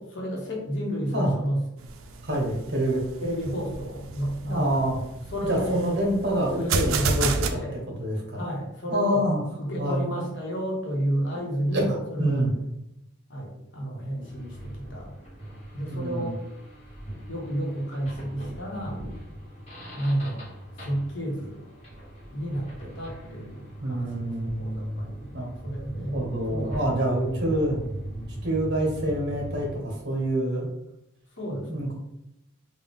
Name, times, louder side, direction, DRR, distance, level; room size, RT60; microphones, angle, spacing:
voice 1, 0.0-1.6 3.2-4.9 5.3-5.8 6.6-7.8 8.3-9.2 9.6-12.5 13.3-15.1 15.7-16.4 17.3-19.0 19.9-20.4 20.7-21.6 22.3-25.3 25.6-26.2 26.5-26.8 27.4-27.6 31.3-31.9, equal, 65° left, -2 dB, 1.0 m, -31 dB
sound 1, 1.8-7.5, right 4 dB, 80° right, 0.4 m, -31 dB
voice 2, 2.2-3.0 4.4-5.0 5.5-7.6 8.0-8.4 8.9-9.4 9.8-10.0 11.7-12.5 15.9-16.3 23.8-25.1 25.3-25.5 26.1-27.8 28.4-30.7 31.7-31.9, right 1 dB, 55° right, -1 dB, 1.0 m, -26 dB
sound 2, 14.2-29.8, right 1 dB, 30° left, 1.1 m, -40 dB
3.8 x 2.3 x 3.5 m, 0.84 s
head